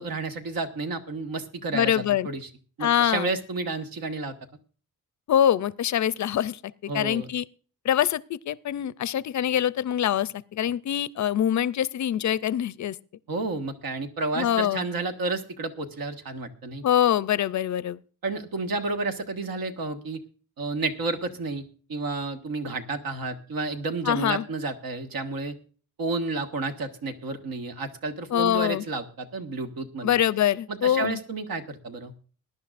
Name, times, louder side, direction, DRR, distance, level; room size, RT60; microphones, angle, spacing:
voice 1, 0.0-2.5 2.8-4.4 6.9-7.3 13.3-16.8 18.2-20.2 20.6-21.6 21.9-25.5 26.0-30.2 30.7-32.1, right 3 dB, 80° right, 1.5 m, -31 dB
voice 2, 1.7-2.3 2.8-3.3 5.3-6.6 6.9-7.4 7.8-13.0 14.4-14.8 16.8-18.0 24.1-24.4 28.3-28.8 30.0-31.2, left 10 dB, 55° left, 0.4 m, -24 dB
21.0 x 10.5 x 2.5 m
wide cardioid pair, 145°, 35 cm